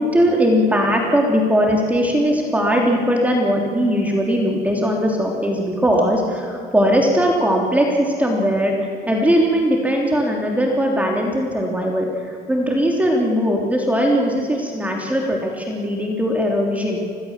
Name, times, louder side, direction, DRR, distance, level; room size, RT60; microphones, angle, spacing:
voice 1, 0.0-8.7 9.1-17.1, equal, 10° right, 0 dB, 3.3 m, -19 dB
25.5 x 18.5 x 7.5 m, 2.5 s
cardioid pair, 110°, 17 cm